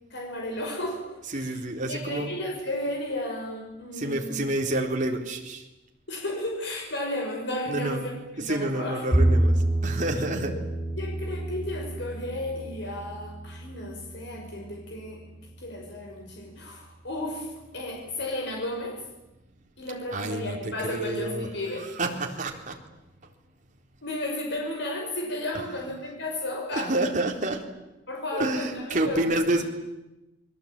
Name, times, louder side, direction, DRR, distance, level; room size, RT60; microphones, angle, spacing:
voice 1, 0.1-1.6 1.9-4.4 6.1-9.0 10.5-10.6 11.0-15.2 15.6-19.0 19.8-21.9 24.0-26.9 28.1-29.3, left 1 dB, 65° left, 1 dB, 5.9 m, -33 dB
voice 2, 1.3-2.3 3.9-5.7 7.7-8.0 8.4-10.5 20.1-21.5 21.8-22.8 25.5-25.8 26.7-27.7 28.3-29.6, right 1 dB, 40° right, 2 dB, 4.0 m, -29 dB
Bowed string instrument, 9.1-15.4, right 1 dB, 25° left, 7.1 m, -28 dB
28.5 x 22.0 x 9.0 m, 0.99 s
head